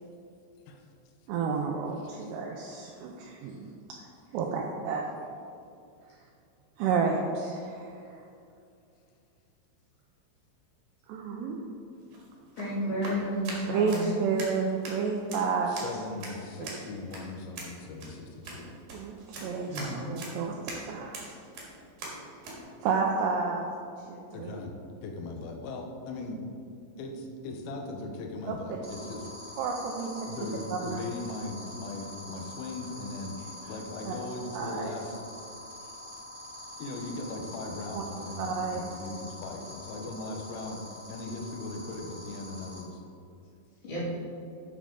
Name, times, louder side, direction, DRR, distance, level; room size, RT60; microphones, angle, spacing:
voice 1, 1.3-3.7 4.3-5.0 6.8-8.0 11.1-11.6 13.7-15.7 16.6-16.8 18.9-21.3 22.8-23.7 24.1-24.6 28.5-28.8 29.6-30.3 30.7-31.0 34.1-34.2 34.5-34.9 37.9-38.0 38.4-38.8, right 5 dB, 85° right, 0 dB, 2.4 m, -31 dB
sound 1, 12.0-22.6, right 2 dB, 55° right, 2.6 m, -43 dB
voice 2, 12.6-14.1 19.7-20.1 43.8-44.0, equal, 50° left, -8 dB, 3.2 m, -32 dB
voice 3, 15.7-18.7 24.3-24.7 25.0-26.4 27.0-29.3 30.2-33.4 33.7-35.2 36.8-40.8 41.1-43.0, left 2 dB, 80° left, 2 dB, 2.2 m, -39 dB
sound 2, 28.8-42.8, left 1 dB, 40° right, 2.1 m, -45 dB
10.5 x 6.4 x 3.8 m, 2.5 s
omnidirectional pair, 5.6 m